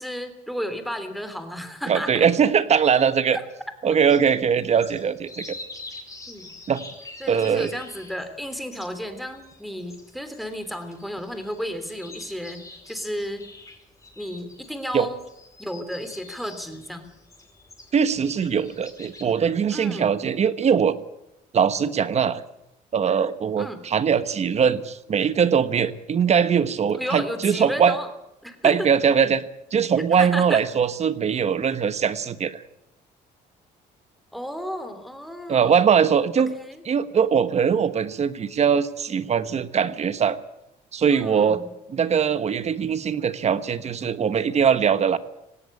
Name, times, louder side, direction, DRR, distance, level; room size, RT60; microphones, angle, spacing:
voice 1, 0.0-2.3 6.3-6.5 7.2-13.4 14.2-15.2 15.6-17.1 19.7-20.1 23.6-23.8 26.9-28.1 28.4-28.9 30.2-30.6 34.3-35.9 36.4-36.8 41.1-41.7, equal, ahead, 8 dB, 3.1 m, -33 dB
voice 2, 1.9-3.4 3.8-5.5 6.7-6.8 7.3-7.7 14.9-15.1 17.9-20.9 21.5-22.4 22.9-27.9 28.6-29.4 29.7-32.6 35.5-36.5 36.9-40.4 40.9-41.6 41.9-45.2, right 7 dB, 40° right, 13 dB, 1.2 m, -21 dB
sound 1, 4.1-19.3, left 2 dB, 20° left, 5.2 m, -45 dB
18.5 x 17.0 x 8.6 m, 0.85 s
cardioid pair, 110°, 17 cm